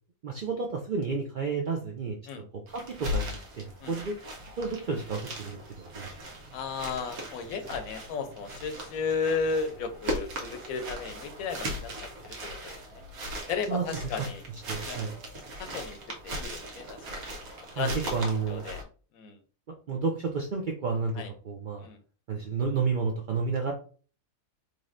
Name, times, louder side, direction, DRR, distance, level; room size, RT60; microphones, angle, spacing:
voice 1, 0.2-2.2 2.5-4.2 4.6-6.1 13.7-13.8 14.7-15.2 17.7-18.7 19.9-21.9 22.3-23.7, right 4 dB, 65° right, 1 dB, 0.5 m, -31 dB
sound 1, 2.7-18.8, equal, 85° right, 1.4 m, -38 dB
voice 2, 6.5-13.0 13.5-14.4 14.7-15.0 15.6-16.0 16.2-16.8 17.1-17.2 17.8-18.8 19.1-19.4 21.2-21.3 21.8-22.0, left 5 dB, 85° left, 8 dB, 1.1 m, -34 dB
4.0 x 3.1 x 2.5 m, 0.40 s
omnidirectional pair, 1.4 m